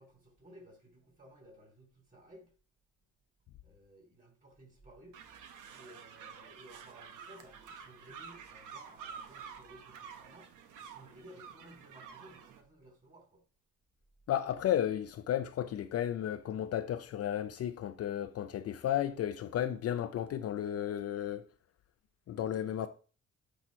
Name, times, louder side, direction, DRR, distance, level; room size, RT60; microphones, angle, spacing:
voice 1, 0.0-2.5 3.6-5.2 5.7-10.5 10.8-13.4, right 1 dB, 25° right, 3.5 m, -57 dB
sound 1, 5.1-12.6, right 7 dB, 90° right, 0.9 m, -50 dB
voice 2, 14.3-21.5 22.3-22.9, left 10 dB, 55° left, 0.5 m, -33 dB
8.2 x 2.9 x 4.2 m
cardioid pair, 90°, 30 cm